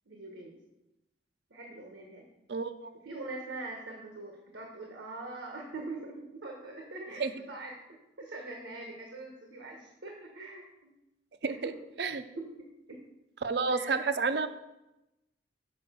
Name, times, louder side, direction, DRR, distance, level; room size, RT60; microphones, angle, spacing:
voice 1, 0.0-0.6 1.5-2.2 3.0-10.9 11.6-11.8 12.3-12.7 13.7-14.1, right 2 dB, 90° right, 0 dB, 1.3 m, -43 dB
voice 2, 2.5-2.9 7.2-7.3 11.4-11.7 12.0-12.2 13.4-14.5, right 4 dB, 60° right, 11 dB, 0.5 m, -30 dB
6.7 x 5.0 x 6.8 m, 0.95 s
head